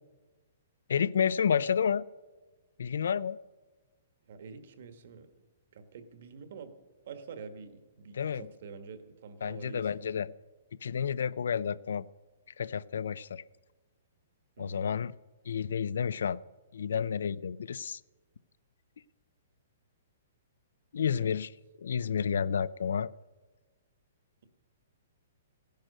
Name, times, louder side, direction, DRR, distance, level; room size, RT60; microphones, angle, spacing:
voice 1, 0.9-2.1 2.8-3.4 8.2-8.5 9.4-10.3 10.8-12.1 12.6-13.4 14.6-15.1 15.5-16.4 16.7-18.0 20.9-21.5 21.8-23.1, left 7 dB, 80° left, 20 dB, 0.5 m, -30 dB
voice 2, 4.3-5.3 5.7-6.7 7.0-10.2 14.6-14.8 21.0-21.3, right 5 dB, 50° right, 9 dB, 1.4 m, -47 dB
16.0 x 10.5 x 6.6 m, 1.2 s
hypercardioid pair, 175°, 0 cm